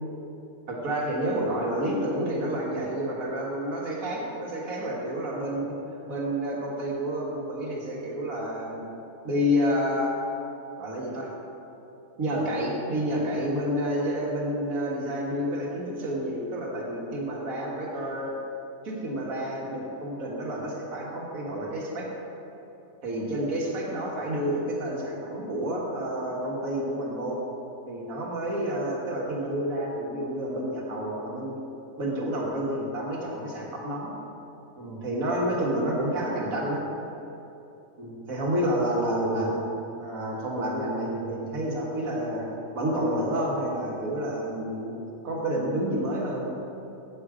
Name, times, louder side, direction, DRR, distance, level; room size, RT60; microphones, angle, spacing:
voice 1, 0.7-5.8 6.1-8.9 9.2-10.2 10.8-11.3 12.2-18.3 18.8-22.1 23.0-27.4 27.9-31.6 32.0-34.1 34.8-36.8 38.0-39.6 40.0-42.5 42.7-45.0 45.2-46.6, equal, 80° right, -3 dB, 1.9 m, -29 dB
7.9 x 7.6 x 4.9 m, 2.9 s
omnidirectional pair, 1.4 m